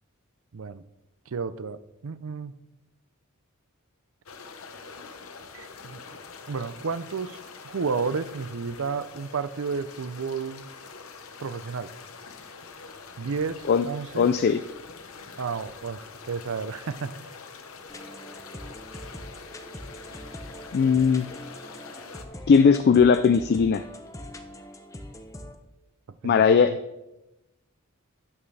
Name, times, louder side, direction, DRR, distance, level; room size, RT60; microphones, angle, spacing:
voice 1, 0.5-0.8 1.3-2.5 5.5-6.0 6.5-7.4 7.6-10.7 11.4-11.9 13.2-14.3 15.4-17.1 26.2-26.4, right 5 dB, 65° right, 14 dB, 0.5 m, -32 dB
sound 1, 4.3-22.2, left 4 dB, 70° left, 1.0 m, -45 dB
voice 2, 14.2-14.6 20.7-21.3 22.5-23.9 26.2-26.7, left 6 dB, 50° left, 11 dB, 0.4 m, -19 dB
sound 2, 17.9-25.6, left 1 dB, 15° left, 0.7 m, -42 dB
12.5 x 8.5 x 3.3 m, 0.97 s
head